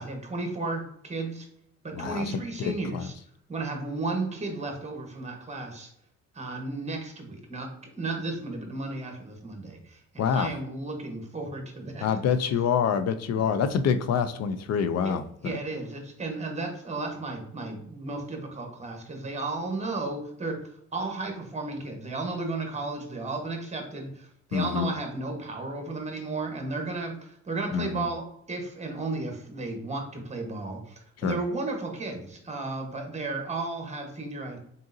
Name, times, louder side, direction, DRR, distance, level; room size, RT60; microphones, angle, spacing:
voice 1, 0.0-1.5 1.8-3.1 3.5-5.9 6.3-7.7 8.0-12.0 13.3-13.4 15.0-15.1 15.4-20.6 20.9-30.9 31.2-34.6, right 3 dB, 20° right, 3 dB, 1.1 m, -34 dB
voice 2, 1.9-2.2 2.6-3.1 10.2-10.5 12.0-15.6 24.5-24.9 27.7-28.1 31.2-31.4, left 7 dB, 60° left, 11 dB, 0.5 m, -26 dB
4.0 x 3.7 x 2.6 m, 0.71 s
cardioid pair, 90°, 30 cm